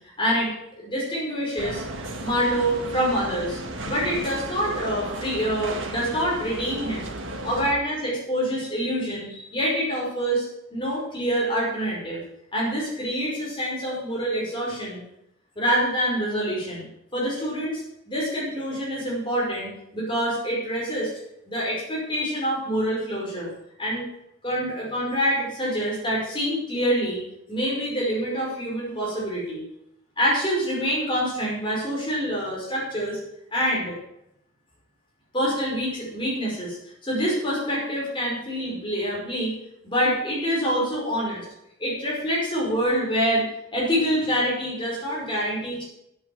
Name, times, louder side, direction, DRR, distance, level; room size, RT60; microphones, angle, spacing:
voice 1, 0.2-0.5 0.8-1.8 2.2-3.6 3.9-7.1 7.4-12.2 12.5-15.0 15.5-16.9 17.1-21.1 21.5-23.5 23.8-24.1 24.4-27.2 27.5-29.6 30.2-33.2 33.5-33.9 35.3-36.8 37.0-39.5 39.8-41.4 41.8-43.4 43.7-45.8, equal, 25° left, -5 dB, 5.1 m, -26 dB
sound 1, 1.6-7.7, right 2 dB, 70° right, 1.8 m, -34 dB
10.0 x 8.7 x 7.8 m, 0.80 s
head